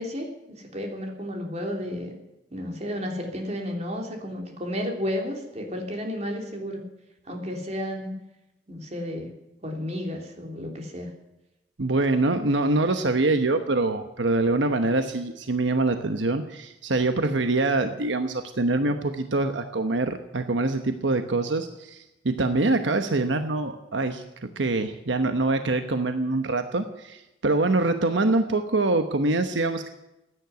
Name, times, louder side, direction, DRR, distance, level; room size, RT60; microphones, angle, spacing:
voice 1, 0.0-2.1 2.5-6.8 7.3-8.2 8.7-9.3 9.6-11.1, left 1 dB, 35° right, 1 dB, 3.3 m, -32 dB
voice 2, 11.8-29.9, right 2 dB, 80° right, 7 dB, 1.1 m, -24 dB
15.5 x 9.9 x 9.5 m, 0.95 s
head